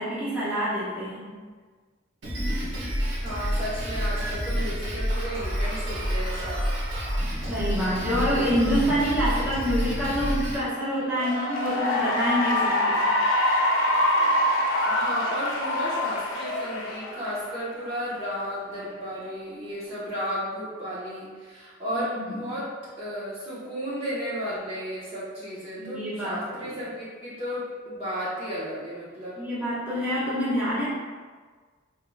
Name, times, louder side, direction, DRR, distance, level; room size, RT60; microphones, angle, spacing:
voice 1, 0.0-1.3 7.5-13.1 22.2-22.3 25.8-26.7 29.4-30.9, equal, 10° right, -11 dB, 1.2 m, -27 dB
Drum kit, 2.2-10.6, equal, 65° right, 1.2 m, -28 dB
voice 2, 3.2-6.6 7.1-7.5 14.4-14.6 14.9-22.7 23.0-29.3, equal, 30° right, -10 dB, 1.1 m, -33 dB
Cheering / Applause, 11.0-17.7, left 1 dB, 85° left, 0.8 m, -25 dB
5.6 x 3.3 x 2.3 m, 1.5 s
head